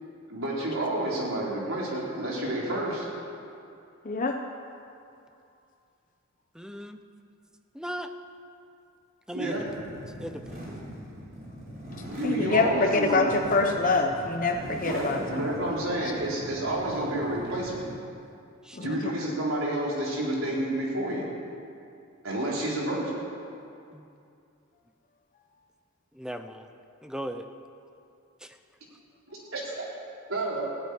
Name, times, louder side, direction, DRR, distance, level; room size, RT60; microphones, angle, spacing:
voice 1, 0.3-3.1 9.3-9.7 12.1-13.3 14.8-17.8 18.8-21.3 22.2-23.2 29.3-29.8 30.3-30.7, right 1 dB, 90° right, -4 dB, 4.1 m, -30 dB
voice 2, 4.0-4.4 12.2-15.4 18.7-19.0, left 3 dB, 40° left, 3 dB, 0.9 m, -25 dB
voice 3, 6.6-7.0 7.8-8.1 9.3-9.6 10.2-10.4 18.7-18.8 23.9-24.1 26.2-26.6 27.0-27.4, equal, 5° right, 7 dB, 0.7 m, -36 dB
sound 1, 9.5-18.1, equal, 50° right, 5.2 m, -41 dB
15.5 x 9.1 x 9.8 m, 2.5 s
head